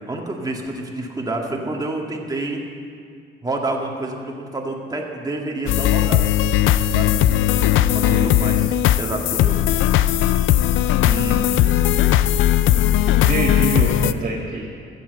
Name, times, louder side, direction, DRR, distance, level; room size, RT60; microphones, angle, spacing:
voice 1, 0.0-2.6 3.4-6.3 6.9-7.2 7.9-9.6 11.0-12.1, right 2 dB, 20° right, 0 dB, 2.0 m, -28 dB
sound 1, 5.7-14.1, left 12 dB, 80° left, 0.4 m, -18 dB
voice 2, 8.0-8.6 13.3-14.7, right 3 dB, 35° right, -4 dB, 1.9 m, -26 dB
14.0 x 7.7 x 7.8 m, 2.3 s
cardioid pair, 90°, 20 cm